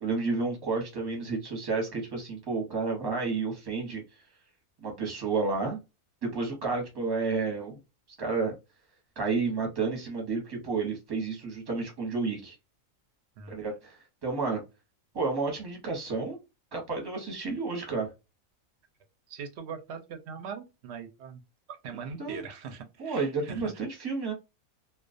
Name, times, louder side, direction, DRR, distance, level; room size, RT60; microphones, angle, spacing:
voice 1, 0.0-4.0 4.8-5.8 6.2-7.8 8.2-8.5 9.2-12.5 13.5-14.6 15.1-16.4 16.7-18.1 22.2-22.4 23.0-24.3, right 4 dB, 20° right, 0.7 m, -31 dB
voice 2, 13.4-13.7 19.3-21.4 21.7-23.6, right 6 dB, 65° right, 0.7 m, -41 dB
2.3 x 2.1 x 2.4 m
omnidirectional pair, 1.5 m